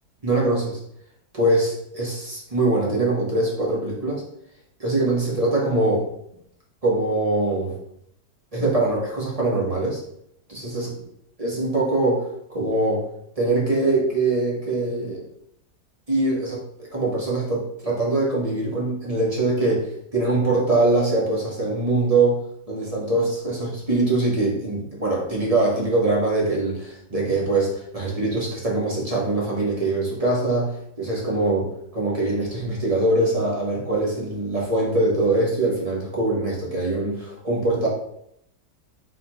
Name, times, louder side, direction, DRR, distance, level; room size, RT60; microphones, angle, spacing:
voice 1, 0.2-0.8 1.3-4.2 4.8-6.1 6.8-7.8 8.5-10.0 10.5-10.9 11.4-13.0 13.4-15.2 16.1-22.4 22.7-37.9, right 2 dB, 30° right, -4 dB, 0.8 m, -23 dB
4.1 x 4.0 x 2.9 m, 0.74 s
omnidirectional pair, 1.9 m